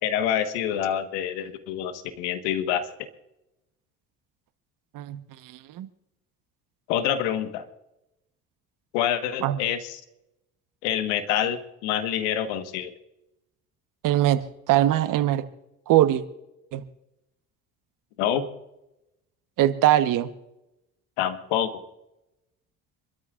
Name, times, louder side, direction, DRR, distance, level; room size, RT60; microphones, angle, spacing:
voice 1, 0.0-2.9 6.9-7.6 8.9-10.0 10.8-12.9 18.2-18.5 21.2-21.8, left 10 dB, 80° left, 9 dB, 1.5 m, -26 dB
voice 2, 4.9-5.9 9.4-9.6 14.0-14.4 14.7-15.4 15.9-16.2 16.7-16.8 19.6-20.3, right 13 dB, 65° right, 11 dB, 1.2 m, -22 dB
27.0 x 13.0 x 2.5 m, 0.90 s
hypercardioid pair, 65°, 34 cm